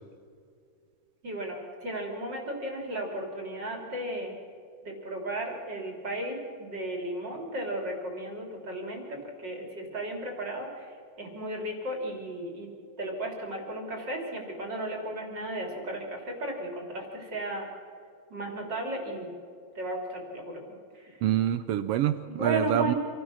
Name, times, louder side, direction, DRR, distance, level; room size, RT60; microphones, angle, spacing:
voice 1, 1.2-4.3 4.8-12.7 13.0-17.7 18.3-19.4 19.8-20.6 20.9-21.2 22.3-23.0, right 1 dB, 35° right, 1 dB, 3.7 m, -35 dB
voice 2, 21.2-22.9, right 11 dB, 80° right, 12 dB, 1.3 m, -26 dB
27.0 x 16.0 x 6.4 m, 2.3 s
omnidirectional pair, 3.3 m